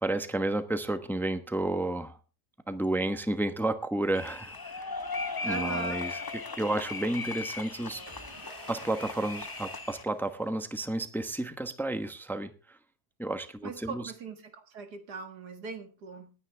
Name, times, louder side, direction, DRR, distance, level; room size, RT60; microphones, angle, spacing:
voice 1, 0.0-2.2 2.7-4.9 5.4-8.0 8.7-12.5 13.2-14.1, right 2 dB, ahead, 9 dB, 0.9 m, -31 dB
sound 1, 4.1-10.0, left 4 dB, 40° left, 0.3 m, -37 dB
voice 2, 5.4-6.0 13.6-14.4 14.7-16.3, right 5 dB, 85° right, 7 dB, 2.4 m, -39 dB
sound 2, 8.1-10.9, right 2 dB, 15° right, 1.6 m, -49 dB
19.0 x 9.9 x 3.4 m, 0.33 s
omnidirectional pair, 1.7 m